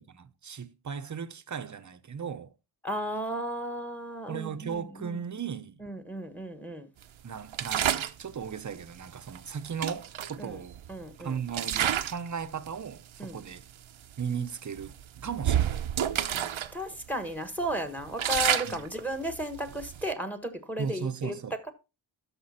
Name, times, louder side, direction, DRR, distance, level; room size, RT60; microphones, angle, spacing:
voice 1, 0.0-2.5 4.3-5.8 7.2-10.8 11.2-13.7 14.2-15.0 15.2-15.8 16.3-16.7 18.7-18.8 20.8-21.5, right 7 dB, 35° right, 0.8 m, -36 dB
voice 2, 2.8-5.2 5.8-6.9 10.4-10.6 10.9-11.4 13.2-13.4 16.7-21.3, equal, 5° left, 1.4 m, -34 dB
sound 1, 7.5-8.2 9.3-9.4 9.8-11.0 11.5-12.3 12.6-12.9 13.6-13.7 14.0-14.2 14.8-16.7 17.0-17.1 17.6-20.1, right 10 dB, 75° right, 0.8 m, -29 dB
12.5 x 5.2 x 4.2 m
wide cardioid pair, 120°, 48 cm